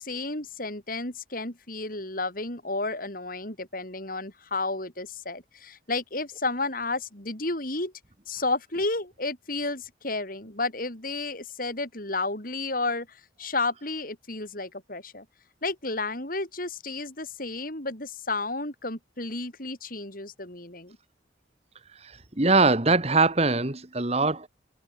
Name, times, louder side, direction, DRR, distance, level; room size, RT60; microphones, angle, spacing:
voice 1, 0.0-7.9 8.3-15.3 15.6-21.0, left 3 dB, 50° left, 6.0 m, -32 dB
voice 2, 22.0-24.5, right 3 dB, 35° right, 1.7 m, -22 dB
head